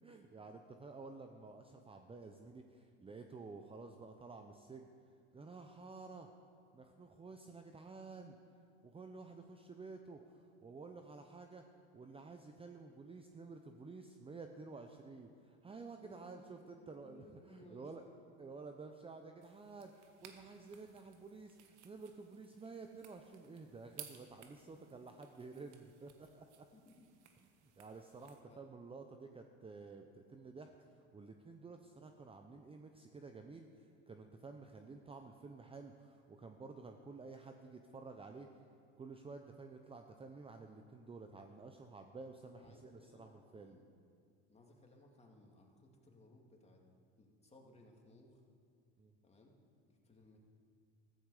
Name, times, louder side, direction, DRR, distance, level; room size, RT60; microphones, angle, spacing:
voice 1, 0.0-4.9 5.3-6.3 6.7-8.4 8.8-11.6 11.9-18.0 18.4-26.6 27.8-38.5 39.0-43.8 49.0-49.2, right 4 dB, 15° right, 5 dB, 0.8 m, -52 dB
voice 2, 16.0-18.3 24.7-24.9 26.7-27.1 28.4-28.7 42.5-43.9 44.5-46.8 47.2-48.4 49.2-49.6 49.9-50.4, left 1 dB, 20° left, 0 dB, 2.7 m, -62 dB
sound 1, 19.4-28.4, right 10 dB, 85° right, 1.6 m, -59 dB
14.5 x 14.5 x 5.0 m, 2.3 s
supercardioid pair, 95°, 34 cm